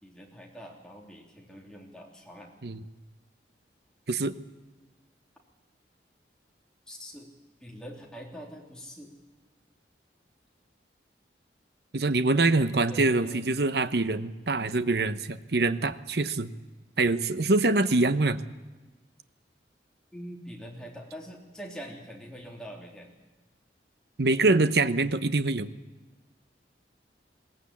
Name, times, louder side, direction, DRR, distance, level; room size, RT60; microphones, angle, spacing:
voice 1, 0.0-2.5 6.9-7.3 7.6-9.1 12.9-13.5 20.1-23.1, equal, 5° left, -1 dB, 3.3 m, -44 dB
voice 2, 11.9-16.5 17.0-18.4 24.2-25.7, right 3 dB, 65° right, 12 dB, 0.9 m, -24 dB
21.0 x 17.5 x 8.5 m, 1.2 s
head